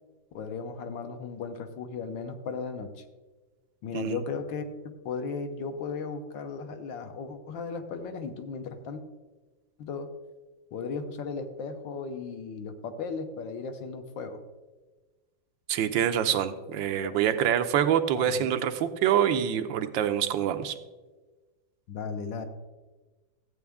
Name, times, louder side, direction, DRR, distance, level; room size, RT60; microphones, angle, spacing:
voice 1, 0.3-3.0 3.8-9.0 9.8-10.1 10.7-14.4 17.0-17.2 18.2-18.5 21.9-22.5, left 5 dB, 75° left, 7 dB, 1.6 m, -36 dB
voice 2, 15.7-20.7, right 9 dB, 85° right, 9 dB, 1.4 m, -26 dB
14.0 x 8.7 x 3.5 m, 1.2 s
omnidirectional pair, 2.0 m